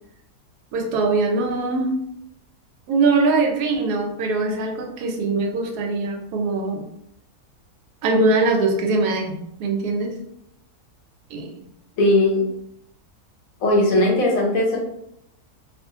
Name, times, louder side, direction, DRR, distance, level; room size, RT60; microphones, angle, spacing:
voice 1, 0.7-2.0 2.9-6.9 8.0-9.3 9.6-10.2 11.3-11.5, right 3 dB, 90° right, 2 dB, 1.1 m, -22 dB
voice 2, 12.0-12.4 13.6-14.8, left 1 dB, 70° left, -1 dB, 1.0 m, -18 dB
2.5 x 2.3 x 2.7 m, 0.76 s
omnidirectional pair, 1.6 m